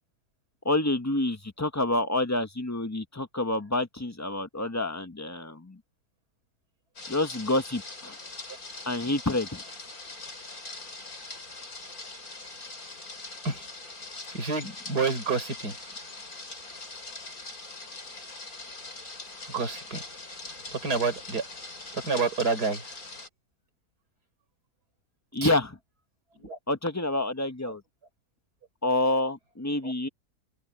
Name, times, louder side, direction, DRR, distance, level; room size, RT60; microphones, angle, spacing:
voice 1, 0.6-5.8 7.1-8.2 8.9-9.6 25.3-25.7 26.7-27.8 28.8-30.1, left 2 dB, 15° left, 0.7 m, -28 dB
sound 1, 7.0-23.3, left 3 dB, 65° left, 4.6 m, -42 dB
voice 2, 14.3-15.7 19.5-20.0 20.7-21.4 21.9-22.9 25.4-25.5 26.3-26.6 29.8-29.9, right 4 dB, 80° right, 5.0 m, -29 dB
open air
omnidirectional pair, 1.7 m